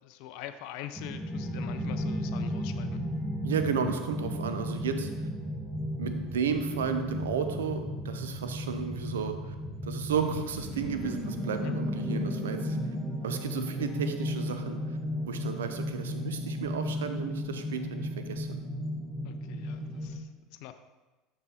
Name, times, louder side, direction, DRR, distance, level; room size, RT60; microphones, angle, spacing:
voice 1, 0.0-3.0 11.6-11.7 14.5-14.6 19.2-20.7, left 12 dB, 65° left, 9 dB, 0.4 m, -44 dB
sound 1, 0.9-20.2, equal, 10° right, 1.2 m, -34 dB
voice 2, 3.4-5.1 6.0-9.5 9.8-12.8 13.2-14.8 15.2-18.6, right 6 dB, 85° right, 7 dB, 0.6 m, -33 dB
6.9 x 5.9 x 3.8 m, 1.2 s
hypercardioid pair, 80°, 0 cm